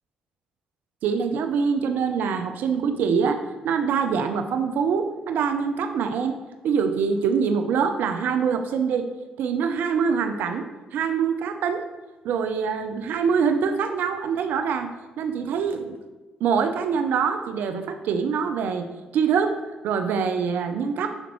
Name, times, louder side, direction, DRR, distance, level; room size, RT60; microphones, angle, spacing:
voice 1, 1.0-6.3 6.6-9.1 9.4-11.8 12.2-14.9 15.2-16.0 16.4-18.9 19.1-19.5 19.8-21.1, right 6 dB, 65° right, 7 dB, 0.5 m, -24 dB
10.5 x 5.1 x 3.0 m, 1.2 s
hypercardioid pair, 50°, 3 cm